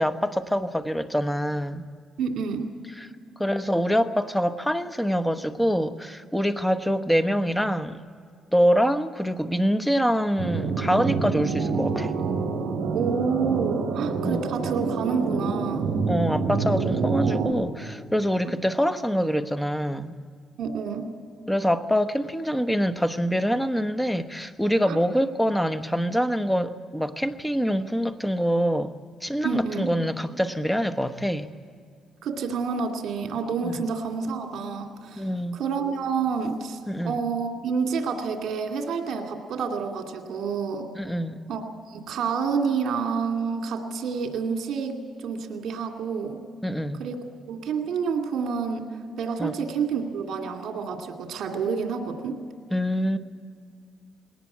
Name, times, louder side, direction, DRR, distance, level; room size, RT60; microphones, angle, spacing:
voice 1, 0.0-1.8 3.0-3.1 3.4-8.0 8.5-12.1 14.2-14.5 16.1-20.1 21.5-28.9 29.2-31.5 33.6-33.8 35.2-35.6 36.9-37.2 40.9-41.4 46.6-47.0 49.4-49.6 52.7-53.2, equal, 5° left, 10 dB, 1.1 m, -25 dB
voice 2, 2.2-2.7 12.9-15.9 18.5-18.6 20.6-21.1 24.9-25.0 29.4-29.9 32.2-35.3 35.5-40.9 41.5-46.4 47.0-52.4, right 5 dB, 70° right, 3 dB, 2.4 m, -29 dB
sound 1, 10.4-17.5, right 4 dB, 55° right, 5.8 m, -27 dB
20.5 x 18.0 x 8.6 m, 2.1 s
cardioid pair, 90°, 0 cm